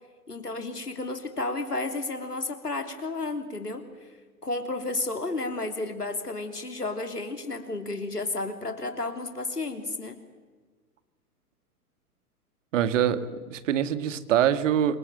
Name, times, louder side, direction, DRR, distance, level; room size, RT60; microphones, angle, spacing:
voice 1, 0.3-3.9 4.4-10.2, left 2 dB, 85° left, 6 dB, 3.3 m, -32 dB
voice 2, 12.7-15.0, right 10 dB, 55° right, 12 dB, 2.1 m, -24 dB
27.0 x 24.5 x 7.7 m, 1.4 s
figure-of-eight pair, 105°, 46 cm